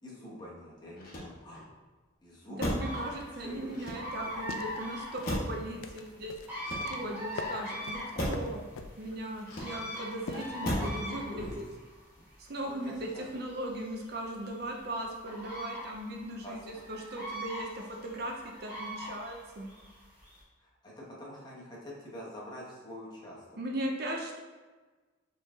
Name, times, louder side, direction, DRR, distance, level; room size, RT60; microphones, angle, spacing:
voice 1, 0.0-1.6 2.2-3.0 3.3-3.9 10.3-11.6 12.6-13.2 16.4-16.8 20.6-23.6, equal, 20° left, -5 dB, 1.0 m, -45 dB
Motor vehicle (road), 0.9-1.7 2.6-3.0 3.7-4.4 5.2-5.7 6.5-7.2 8.1-8.5 9.4-10.0 10.6-11.0 11.4-11.8, equal, 45° left, 1.0 m, -35 dB
voice 2, 2.5-6.3 6.8-8.6 9.0-11.6 12.4-19.7 23.6-24.4, right 1 dB, 50° right, 1 dB, 0.5 m, -38 dB
sound 1, 2.8-20.4, equal, 10° right, 1.4 m, -42 dB
sound 2, 4.2-11.8, left 4 dB, 80° left, 0.4 m, -46 dB
4.4 x 3.2 x 3.5 m, 1.3 s
head